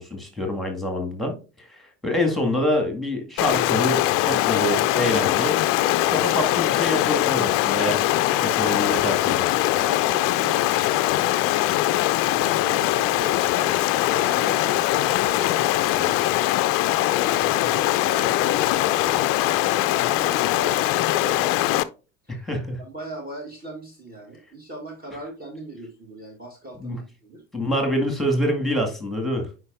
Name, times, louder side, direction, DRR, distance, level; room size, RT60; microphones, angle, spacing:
voice 1, 0.0-5.6 6.0-8.1 8.4-9.5 22.3-22.8 26.8-27.0 27.5-29.5, left 1 dB, ahead, 1.9 m, -26 dB
Stream, 3.4-21.8, left 15 dB, 35° left, 0.4 m, -22 dB
voice 2, 9.7-11.3 12.2-16.3 17.2-21.8 22.2-22.4 22.8-27.4, right 1 dB, 25° right, 1.5 m, -39 dB
9.5 x 4.8 x 2.5 m
figure-of-eight pair, 65°, 39 cm